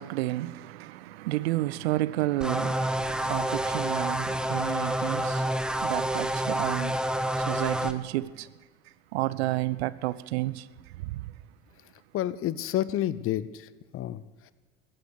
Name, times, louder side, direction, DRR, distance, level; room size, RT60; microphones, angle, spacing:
voice 1, 0.0-8.5 9.1-11.3, right 17 dB, 70° right, 0.6 m, -31 dB
sound 1, 2.4-7.9, right 1 dB, ahead, 0.9 m, -28 dB
voice 2, 12.1-14.5, left 12 dB, 40° left, 0.7 m, -30 dB
14.5 x 9.0 x 8.1 m
figure-of-eight pair, 60°, 33 cm